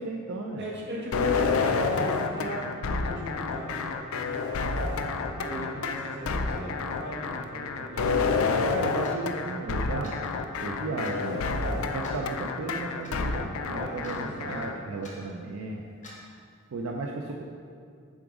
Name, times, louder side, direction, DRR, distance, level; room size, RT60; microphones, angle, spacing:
voice 1, 0.0-0.7 4.8-5.9 8.0-10.2 10.6-15.8 16.7-17.4, right 3 dB, 85° right, 0 dB, 0.5 m, -35 dB
voice 2, 0.6-4.0 5.4-8.2 13.6-14.6, equal, 55° right, -5 dB, 1.6 m, -38 dB
sound 1, 1.1-14.7, left 4 dB, 80° left, 0.5 m, -29 dB
Clock, 9.0-9.2 10.0-10.2 11.0-11.2 12.0-12.2 13.0-13.2 14.0-14.3 15.0-15.2 16.0-16.2, left 1 dB, 35° left, 1.2 m, -47 dB
7.2 x 3.9 x 4.9 m, 2.2 s
head